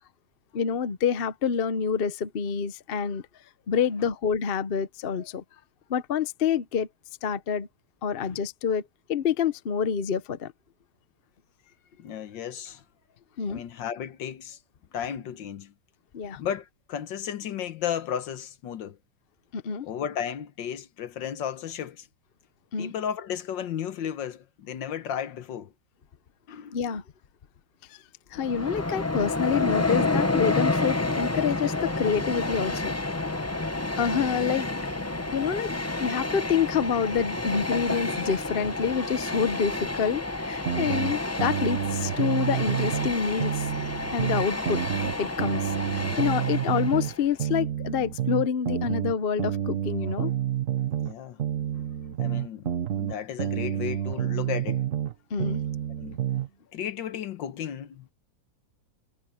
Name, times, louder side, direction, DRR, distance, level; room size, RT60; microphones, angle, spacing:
voice 1, 0.5-3.2 3.7-5.4 5.9-6.9 7.2-7.7 8.0-8.8 9.1-10.5 13.4-13.6 16.1-16.4 19.5-19.9 22.7-22.9 26.7-27.0 28.3-32.9 34.0-34.7 35.3-35.7 36.0-43.7 44.1-44.8 45.2-45.6 45.9-50.3 55.3-55.6, left 7 dB, 45° left, 0.7 m, -27 dB
voice 2, 12.0-12.8 13.5-14.6 14.9-15.7 16.4-19.0 19.8-22.1 22.8-25.7 26.5-26.8 41.1-41.2 45.4-45.6 51.0-51.4 51.7-51.8 52.2-52.7 52.9-54.9 56.0-56.2 56.7-58.1, left 9 dB, 75° left, 1.7 m, -34 dB
Train, 28.4-47.3, left 2 dB, 20° left, 0.4 m, -30 dB
sound 1, 40.7-43.1 43.4-47.1 47.4-51.1 51.4-55.1 55.4-56.5, right 10 dB, 50° right, 1.2 m, -29 dB
omnidirectional pair, 2.0 m